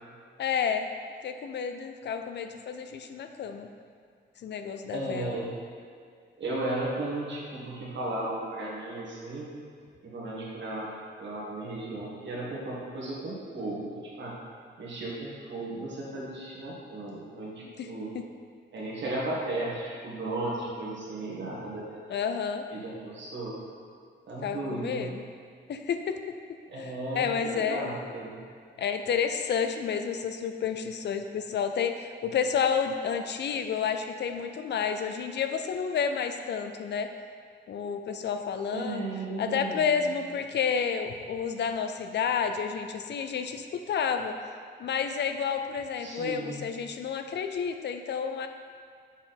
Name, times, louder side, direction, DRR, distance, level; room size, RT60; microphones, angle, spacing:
voice 1, 0.4-0.9 1.2-3.7 4.4-5.3 17.8-17.9 18.1-18.2 22.1-22.6 24.4-25.2 25.7-27.9 28.8-37.1 37.7-39.0 39.4-44.3 44.8-48.5, left 6 dB, 70° left, 7 dB, 0.4 m, -30 dB
voice 2, 4.9-5.5 6.4-9.5 10.0-10.9 11.2-14.3 14.8-18.1 18.7-22.0 22.7-23.6 24.3-25.1 26.7-28.3 38.7-40.1 46.0-46.7, right 2 dB, 80° right, -5 dB, 1.5 m, -35 dB
7.1 x 4.2 x 4.0 m, 2.1 s
wide cardioid pair, 175°, 19 cm